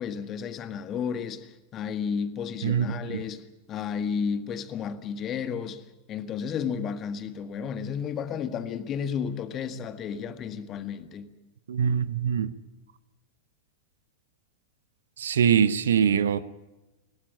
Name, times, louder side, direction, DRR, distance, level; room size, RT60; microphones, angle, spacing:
voice 1, 0.0-11.3, left 7 dB, 30° left, 1.7 m, -32 dB
voice 2, 2.6-3.2 11.7-12.5 15.2-16.4, right 8 dB, 65° right, 0.9 m, -23 dB
21.0 x 17.5 x 8.4 m
figure-of-eight pair, 90°, 0 cm